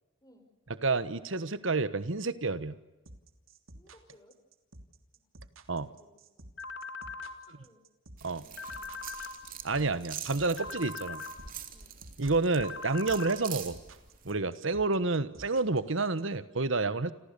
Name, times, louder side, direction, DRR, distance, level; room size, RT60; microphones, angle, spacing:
voice 1, 0.8-2.8 5.7-5.9 8.2-8.4 9.6-11.2 12.2-13.8 14.2-17.1, right 3 dB, 70° right, 14 dB, 1.3 m, -29 dB
sound 1, 3.1-16.2, right 1 dB, 90° right, 3.1 m, -52 dB
voice 2, 3.7-4.4 5.1-5.2 5.9-6.5 7.4-7.8 8.2-9.0 9.7-10.8 11.7-12.0, left 1 dB, 20° left, 6 dB, 5.8 m, -61 dB
sound 2, 6.6-7.3 8.6-9.3 10.6-11.3 12.6-13.3, left 4 dB, 60° left, 2.6 m, -40 dB
sound 3, 8.2-14.3, right 8 dB, 45° right, 3.5 m, -45 dB
29.0 x 28.0 x 6.9 m, 1.0 s
head